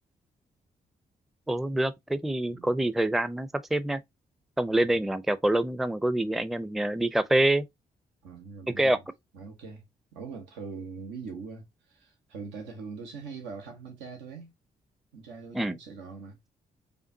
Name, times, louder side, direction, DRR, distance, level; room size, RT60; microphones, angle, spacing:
voice 1, 1.5-4.0 4.6-7.7 8.8-9.0 15.5-15.8, right 1 dB, ahead, 0.4 m, -26 dB
voice 2, 8.2-8.9 9.3-9.8 10.1-14.5 15.1-16.4, right 5 dB, 85° right, 0.9 m, -42 dB
5.1 x 2.3 x 2.6 m
supercardioid pair, 50°, 18 cm